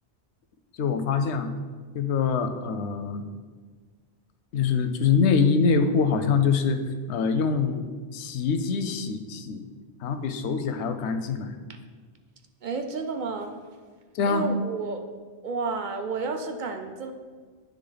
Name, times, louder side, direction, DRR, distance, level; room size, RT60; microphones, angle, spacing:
voice 1, 0.8-1.5 1.9-3.2 4.5-6.8 7.1-7.8 8.1-9.7 10.0-11.5 14.1-14.5, left 5 dB, 85° left, 9 dB, 0.9 m, -24 dB
voice 2, 12.6-13.5 14.2-15.0 15.4-17.1, right 4 dB, 55° right, 5 dB, 0.6 m, -31 dB
9.6 x 3.5 x 3.9 m, 1.5 s
omnidirectional pair, 1.1 m